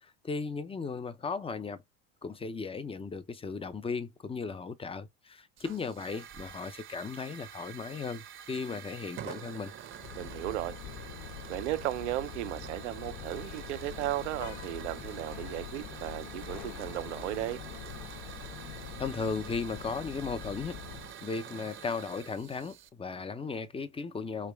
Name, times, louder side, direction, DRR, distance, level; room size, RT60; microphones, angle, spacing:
voice 1, 0.0-1.8 2.2-9.7 19.0-20.8 21.2-24.5, left 4 dB, 15° left, 0.5 m, -36 dB
Hiss / Fire, 5.6-22.9, right 9 dB, 35° right, 0.7 m, -47 dB
sound 1, 9.9-21.1, left 10 dB, 60° left, 0.6 m, -44 dB
voice 2, 10.1-10.8 11.5-17.6, right 15 dB, 85° right, 0.6 m, -35 dB
3.2 x 3.0 x 3.4 m
hypercardioid pair, 85°, 35 cm